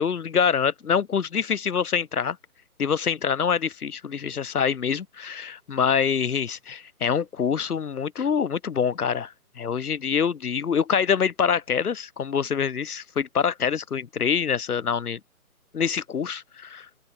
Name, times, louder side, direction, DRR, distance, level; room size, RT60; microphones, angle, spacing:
voice 1, 0.0-2.4 2.8-15.2 15.7-16.9, left 7 dB, 85° left, 0.7 m, -25 dB
open air
figure-of-eight pair, 145°, 44 cm